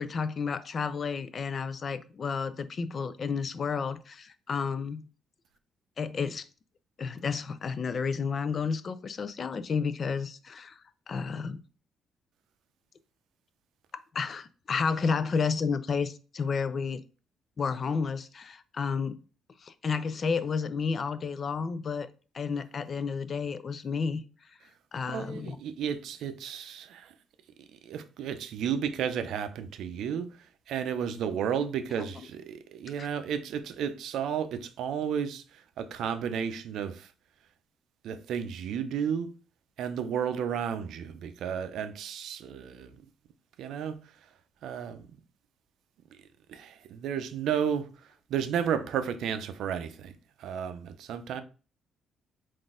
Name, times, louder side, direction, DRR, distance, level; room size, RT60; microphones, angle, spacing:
voice 1, 0.0-5.1 6.0-6.5 7.0-10.8 11.1-11.6 14.1-17.0 17.6-19.2 19.6-22.1 22.3-24.2 24.9-25.6 32.0-32.1 33.0-33.1, left 5 dB, 45° left, 0.4 m, -31 dB
voice 2, 25.1-27.1 27.8-30.3 30.7-37.1 38.0-39.3 39.8-43.0 43.6-44.0 44.6-45.1 46.1-46.2 46.5-47.9 48.3-50.1 50.4-51.4, right 8 dB, 80° right, 0.4 m, -32 dB
3.9 x 2.5 x 3.6 m
cardioid pair, 90°, 0 cm